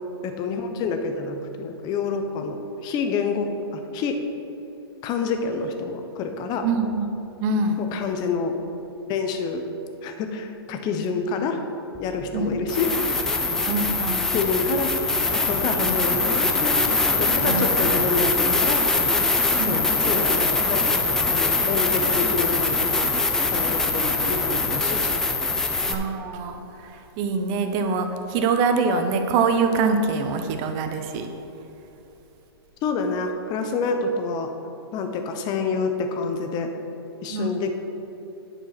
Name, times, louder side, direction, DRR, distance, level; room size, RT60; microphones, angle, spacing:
voice 1, 0.2-4.2 5.0-6.7 7.8-8.6 9.1-9.6 10.0-11.6 12.0-12.9 14.3-15.0 15.3-16.8 17.1-18.8 19.6-23.1 23.4-25.3 32.8-34.5 34.9-36.7 37.2-37.7, left 4 dB, 30° left, 6 dB, 0.9 m, -27 dB
voice 2, 6.6-7.1 7.4-7.8 12.3-12.5 13.7-14.3 15.8-15.9 17.4-17.7 19.6-19.7 25.9-26.9 27.2-31.3 37.3-37.5, right 4 dB, 35° right, 6 dB, 0.8 m, -24 dB
sound 1, 12.0-12.1 12.7-25.9, left 3 dB, 5° left, 0.5 m, -23 dB
10.0 x 4.7 x 5.9 m, 2.9 s
hypercardioid pair, 130°, 14 cm